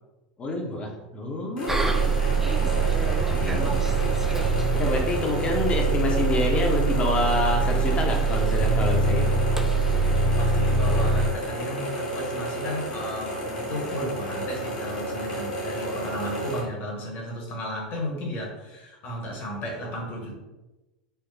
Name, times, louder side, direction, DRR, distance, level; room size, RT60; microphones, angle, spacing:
voice 1, 0.4-1.7 3.2-3.8 4.7-9.4 13.4-14.0 15.8-16.1, left 2 dB, 25° left, 1 dB, 0.8 m, -28 dB
sound 1, 1.6-16.6, right 1 dB, 75° left, 1.1 m, -32 dB
Bus, 1.7-11.3, right 4 dB, 5° right, 0.3 m, -23 dB
voice 2, 10.2-20.3, left 1 dB, 45° left, -1 dB, 1.2 m, -34 dB
4.4 x 2.2 x 2.6 m, 1.1 s
hypercardioid pair, 85°, 4 cm